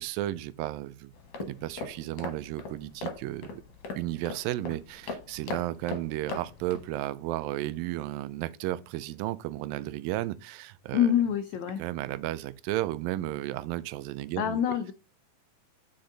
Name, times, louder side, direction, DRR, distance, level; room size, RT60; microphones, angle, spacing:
voice 1, 0.0-3.6 4.0-11.2 11.8-14.8, right 15 dB, 90° right, 2.3 m, -34 dB
sound 1, 1.1-6.9, left 3 dB, 60° left, 2.2 m, -40 dB
voice 2, 10.9-11.8 14.4-14.9, left 9 dB, 85° left, 1.6 m, -26 dB
8.8 x 5.3 x 3.9 m
omnidirectional pair, 4.0 m